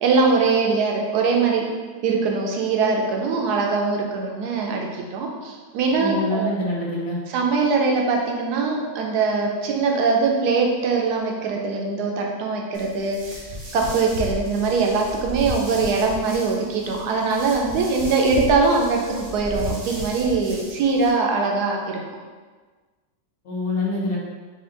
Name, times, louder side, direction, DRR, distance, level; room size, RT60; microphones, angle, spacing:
voice 1, 0.0-1.7 2.0-6.5 7.3-13.4 13.7-22.0, right 4 dB, 75° right, 0 dB, 1.2 m, -22 dB
voice 2, 6.0-7.2 23.4-24.2, left 2 dB, 60° left, -4 dB, 1.2 m, -25 dB
sound 1, 12.7-21.1, left 1 dB, 50° right, 0.7 m, -35 dB
4.3 x 2.7 x 3.7 m, 1.4 s
omnidirectional pair, 1.8 m